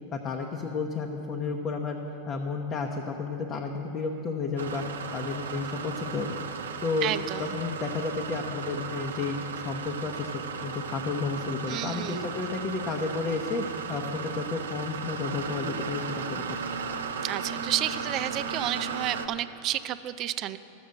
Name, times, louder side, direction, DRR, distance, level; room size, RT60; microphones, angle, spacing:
voice 1, 0.1-2.0 2.3-4.8 5.1-7.1 7.4-9.4 9.6-16.6, left 4 dB, 35° left, 2 dB, 0.8 m, -32 dB
sound 1, 4.6-19.3, right 5 dB, 85° right, 0.6 m, -35 dB
voice 2, 7.0-7.5 11.7-12.3 17.2-20.6, right 13 dB, 45° right, 13 dB, 0.4 m, -31 dB
13.0 x 6.9 x 6.5 m, 3.0 s
hypercardioid pair, 105°, 0 cm